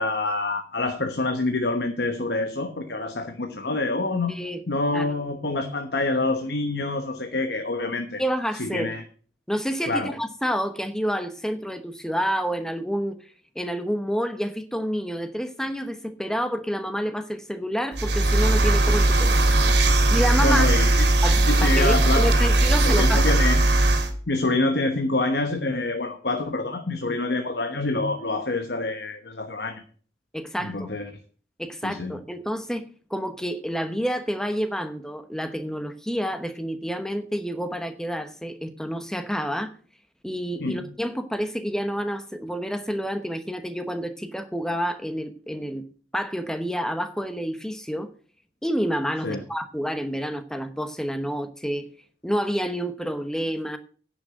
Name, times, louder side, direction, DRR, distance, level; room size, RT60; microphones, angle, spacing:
voice 1, 0.0-4.4 4.7-8.2 8.6-9.0 9.9-10.1 20.4-21.1 21.5-22.3 22.8-23.7 24.3-29.8 30.6-31.1 31.8-32.2 40.6-40.8 49.2-49.4, left 2 dB, 60° left, 6 dB, 1.1 m, -26 dB
voice 2, 4.3-4.6 4.9-5.1 8.2-8.9 9.5-13.2 13.5-19.4 20.1-20.6 21.2-23.2 30.3-30.9 31.6-32.8 33.1-39.7 40.2-45.8 46.1-48.1 48.6-51.9 52.2-53.8, equal, 5° left, 9 dB, 0.9 m, -28 dB
sound 1, 17.9-24.1, right 2 dB, 65° right, 2.4 m, -19 dB
10.0 x 6.3 x 7.7 m, 0.43 s
head